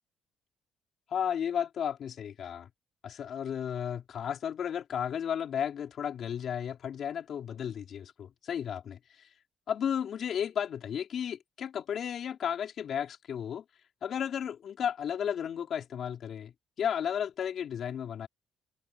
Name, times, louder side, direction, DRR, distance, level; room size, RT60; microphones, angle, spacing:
voice 1, 1.1-2.7 3.0-9.3 9.7-13.6 14.0-18.3, left 8 dB, 50° left, 4.2 m, -34 dB
cardioid pair, 150°, 0 cm